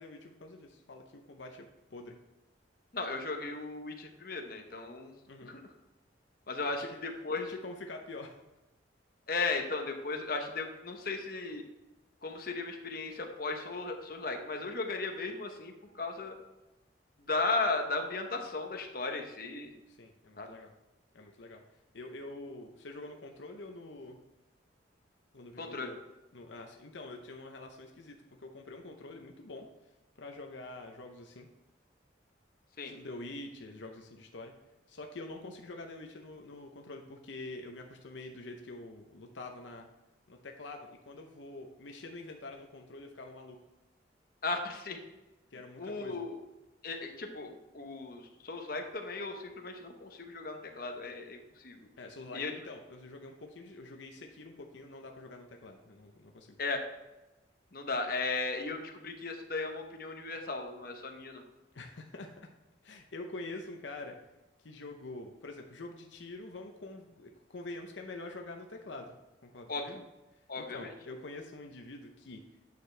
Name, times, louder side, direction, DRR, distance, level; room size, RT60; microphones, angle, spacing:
voice 1, 0.0-2.2 5.3-5.6 6.8-7.0 7.4-8.4 19.9-20.7 21.1-21.6 21.9-24.2 25.3-26.0 26.3-29.7 30.2-31.5 32.8-34.5 34.9-39.9 40.3-43.6 45.5-46.2 52.0-56.6 61.7-62.3 62.8-64.2 64.6-69.1 69.4-70.0 70.6-72.4, left 2 dB, 80° left, 3 dB, 0.8 m, -46 dB
voice 2, 2.9-5.1 5.5-5.6 6.5-6.8 7.2-7.5 9.3-11.6 12.2-16.4 17.3-19.7 20.4-20.5 25.6-25.9 32.8-32.9 44.4-45.0 45.8-46.4 46.8-51.8 52.3-52.5 56.6-56.8 57.7-61.4 69.7-69.8 70.5-70.9, left 3 dB, 50° left, 3 dB, 1.0 m, -36 dB
9.3 x 6.7 x 3.3 m, 1.0 s
head